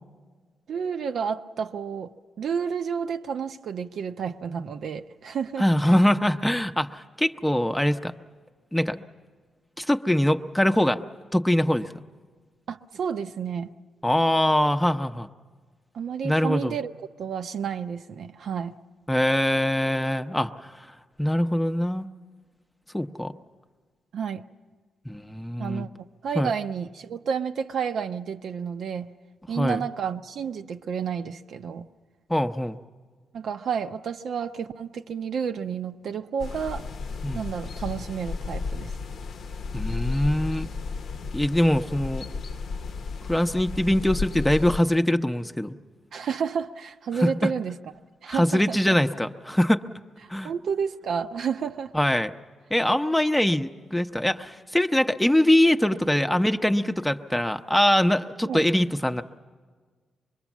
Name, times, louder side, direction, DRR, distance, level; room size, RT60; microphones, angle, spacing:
voice 1, 0.7-5.7 12.7-13.7 15.9-16.9 17.2-18.8 24.1-24.5 25.6-29.1 29.5-31.9 33.3-36.9 37.3-38.9 46.1-47.8 48.2-48.9 50.4-51.9 58.4-58.7, right 7 dB, 70° right, 0.7 m, -31 dB
voice 2, 5.6-8.1 8.7-9.0 9.8-11.0 11.3-11.9 14.0-15.3 16.2-16.8 19.1-20.9 21.2-22.1 22.9-23.3 25.0-25.9 26.3-26.5 29.6-29.8 32.3-32.8 37.2-37.4 39.7-40.7 41.3-42.3 43.3-45.8 47.1-47.5 48.3-49.8 50.3-50.5 51.9-52.3 52.7-59.2, left 1 dB, 5° left, 0.7 m, -23 dB
sound 1, 36.4-44.8, left 4 dB, 70° left, 0.7 m, -33 dB
24.5 x 21.5 x 7.3 m
cardioid pair, 95°, 0 cm